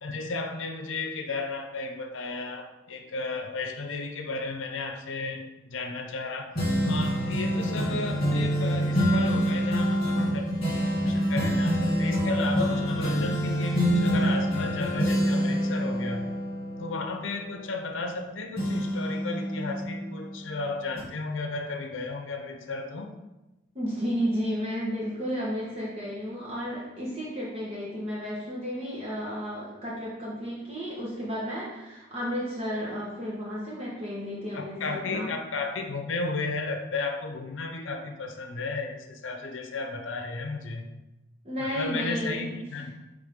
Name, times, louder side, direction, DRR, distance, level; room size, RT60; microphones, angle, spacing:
voice 1, 0.0-6.5 6.8-10.4 11.0-16.3 16.8-23.2 34.5-40.9 41.6-43.0, left 3 dB, 80° left, 6 dB, 0.6 m, -34 dB
sound 1, 6.5-18.2 18.6-20.5 21.0-21.1, equal, 30° left, 2.3 m, -26 dB
voice 2, 23.7-35.3 41.4-42.5, equal, 30° right, -6 dB, 1.3 m, -32 dB
8.9 x 3.6 x 3.6 m, 1.0 s
head